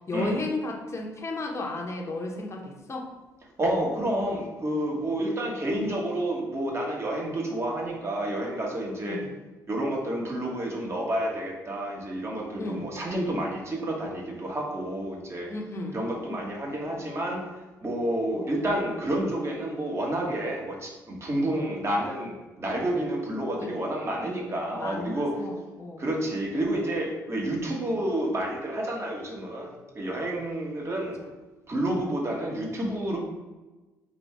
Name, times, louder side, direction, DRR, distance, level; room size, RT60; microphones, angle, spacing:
voice 1, 0.1-3.1 9.0-9.3 12.6-12.9 15.5-16.0 18.3-18.5 21.5-21.7 23.5-23.8 24.2-24.3 24.8-26.0 30.3-30.6 31.0-31.1, left 2 dB, 30° left, 0 dB, 1.0 m, -34 dB
voice 2, 3.6-9.2 9.7-15.5 15.9-17.5 17.8-25.4 26.0-31.2 31.7-33.2, right 1 dB, 30° right, -1 dB, 1.4 m, -29 dB
4.1 x 2.7 x 4.6 m, 1.2 s
hypercardioid pair, 55°, 9 cm